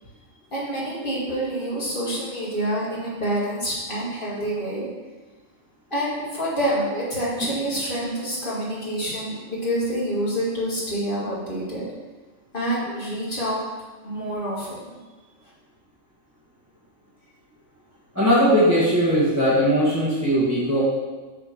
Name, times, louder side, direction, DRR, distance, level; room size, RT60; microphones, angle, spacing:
voice 1, 0.5-4.9 5.9-11.8 12.5-13.6 14.0-15.0, right 1 dB, 40° left, -7 dB, 2.2 m, -27 dB
voice 2, 18.1-20.8, equal, 10° right, -9 dB, 1.6 m, -19 dB
6.9 x 3.6 x 6.0 m, 1.3 s
omnidirectional pair, 1.4 m